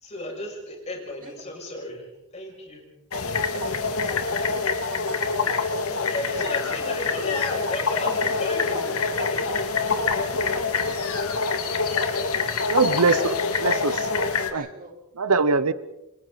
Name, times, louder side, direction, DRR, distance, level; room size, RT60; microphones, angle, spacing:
voice 1, 0.0-2.1 2.3-2.9 6.1-9.0 9.3-9.6, left 1 dB, 30° left, 0 dB, 6.8 m, -34 dB
sound 1, 3.1-14.5, left 4 dB, 80° left, 2.1 m, -25 dB
voice 2, 4.5-6.6 8.1-8.5 9.9-10.0 10.3-10.6 12.8-12.9 14.5-14.9, right 1 dB, 40° right, 1 dB, 4.0 m, -43 dB
voice 3, 12.7-14.1 14.5-14.7 15.2-15.7, right 4 dB, 90° right, 15 dB, 0.9 m, -22 dB
28.5 x 25.5 x 4.1 m, 0.96 s
head